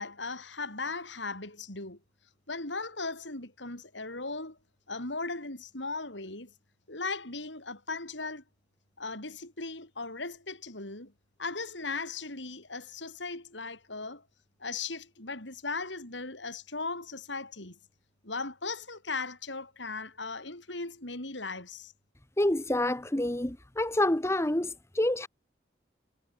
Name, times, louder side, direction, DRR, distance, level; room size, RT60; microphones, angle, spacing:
voice 1, 0.0-2.0 2.5-4.6 4.9-6.5 6.9-8.4 9.0-11.1 11.4-14.2 14.6-17.8 18.2-21.9, left 3 dB, 80° left, 7.7 m, -37 dB
voice 2, 22.4-25.3, left 1 dB, 15° left, 1.2 m, -28 dB
head